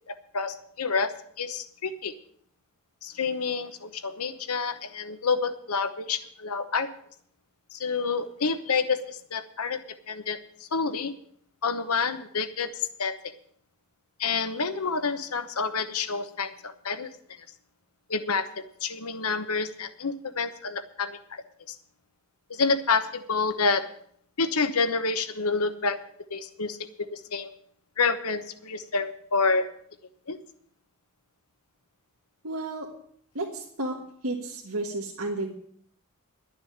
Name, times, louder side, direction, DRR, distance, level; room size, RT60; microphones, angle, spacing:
voice 1, 0.1-2.1 3.0-6.9 7.7-9.8 10.1-11.1 11.6-13.1 14.2-17.1 18.1-18.5 18.8-21.4 21.7-21.8 22.5-23.9 24.4-26.0 26.3-26.8 27.1-27.5 28.0-29.7 30.3-30.4, left 4 dB, 85° left, 10 dB, 1.0 m, -28 dB
voice 2, 32.4-32.9 33.3-34.0 34.2-35.5, right 2 dB, 70° right, 0 dB, 1.7 m, -32 dB
12.0 x 6.9 x 9.3 m, 0.65 s
head